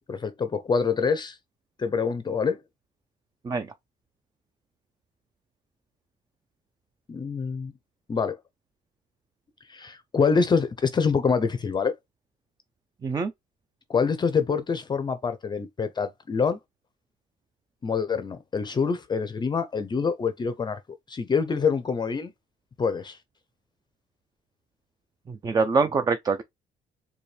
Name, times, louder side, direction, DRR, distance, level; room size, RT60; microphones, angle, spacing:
voice 1, 0.1-1.4 1.8-2.6 7.1-7.7 8.1-8.4 9.7-11.9 13.9-16.6 17.8-20.8 21.1-22.3 22.8-23.2, left 5 dB, 25° left, 0.5 m, -25 dB
voice 2, 25.4-26.4, right 4 dB, 20° right, 0.4 m, -24 dB
4.2 x 2.3 x 3.2 m
cardioid pair, 110°, 17 cm